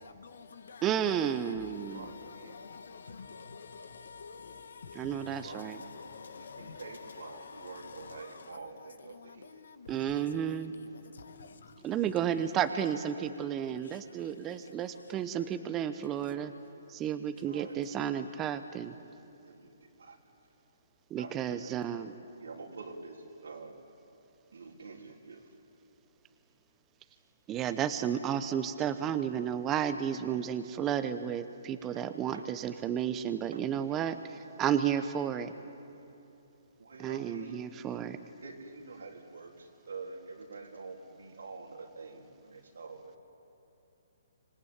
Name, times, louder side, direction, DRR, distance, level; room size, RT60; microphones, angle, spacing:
voice 1, 0.0-12.3 13.4-15.4 16.2-16.4 17.1-17.4, left 5 dB, 75° left, 1.6 m, -50 dB
voice 2, 0.8-2.1 5.0-5.8 9.9-10.7 11.8-16.5 16.9-18.9 21.1-22.1 27.5-35.5 37.0-38.2, right 9 dB, 20° right, 0.9 m, -32 dB
voice 3, 1.9-2.6 5.2-5.9 6.4-9.6 9.9-10.2 12.3-12.4 12.7-13.3 15.1-15.5 17.4-18.1 19.4-20.2 21.2-21.7 22.4-23.7 24.5-25.5 31.8-32.0 32.3-32.4 34.1-34.3 36.8-38.1 38.4-43.2, right 4 dB, 80° right, 3.7 m, -47 dB
26.0 x 20.0 x 8.8 m
hypercardioid pair, 145°, 0 cm